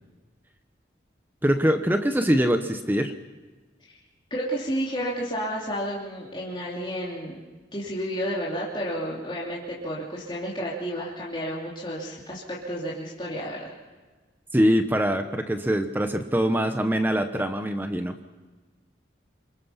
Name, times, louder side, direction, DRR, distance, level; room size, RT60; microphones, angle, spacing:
voice 1, 1.4-3.1 14.5-18.2, equal, 10° right, 7 dB, 0.9 m, -23 dB
voice 2, 4.3-7.4 7.7-13.7, equal, 25° left, -6 dB, 3.0 m, -31 dB
27.5 x 23.0 x 5.8 m, 1.3 s
head